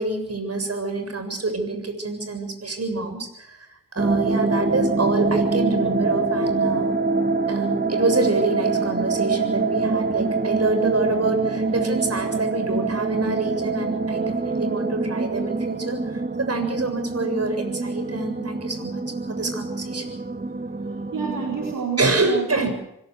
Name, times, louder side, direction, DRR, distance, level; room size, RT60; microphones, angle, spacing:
voice 1, 0.0-3.6 3.9-6.9 7.5-19.0 19.3-20.1 22.0-22.7, right 2 dB, 50° right, 7 dB, 7.4 m, -26 dB
sound 1, 4.0-21.8, right 3 dB, 30° right, 2.6 m, -25 dB
voice 2, 21.1-22.7, right 5 dB, 75° right, 0 dB, 4.6 m, -29 dB
25.5 x 17.5 x 6.5 m, 0.83 s
cardioid pair, 50°, 33 cm